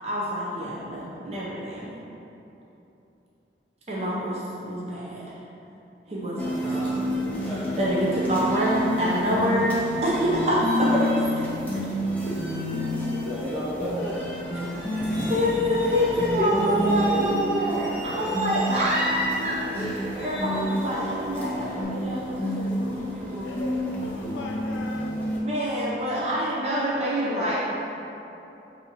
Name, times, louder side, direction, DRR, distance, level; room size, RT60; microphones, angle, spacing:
voice 1, 0.0-1.9 3.9-5.3 6.1-7.1 7.4-11.2 15.3-23.5 25.4-27.5, equal, 35° right, -7 dB, 0.5 m, -26 dB
sound 1, 6.4-25.4, equal, 10° left, 0.5 m, -29 dB
voice 2, 12.9-14.2 16.4-17.2, equal, 55° right, -9 dB, 0.9 m, -31 dB
Truck, 14.4-21.8, equal, 20° right, 1.1 m, -41 dB
voice 3, 23.4-25.2 26.9-27.5, left 2 dB, 85° left, 1 dB, 0.3 m, -37 dB
6.1 x 2.7 x 2.8 m, 2.9 s
head